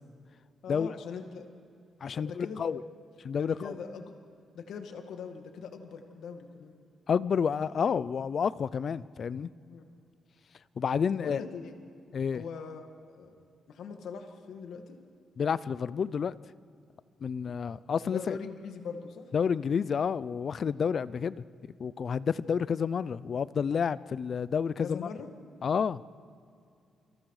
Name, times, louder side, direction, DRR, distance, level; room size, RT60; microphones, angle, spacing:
voice 1, 0.6-1.5 2.1-2.8 3.4-4.1 4.5-6.7 9.7-9.9 11.2-11.8 12.3-12.9 13.1-13.4 13.7-15.0 18.0-19.3 24.8-25.3, left 6 dB, 75° left, 2.0 m, -41 dB
voice 2, 2.0-2.8 3.3-3.7 7.1-9.5 10.8-11.4 12.1-12.4 15.4-16.4 17.2-18.4 19.3-21.4 21.8-25.1 25.6-26.0, left 6 dB, 45° left, 0.5 m, -29 dB
28.0 x 26.0 x 4.9 m
cardioid pair, 150°, 0 cm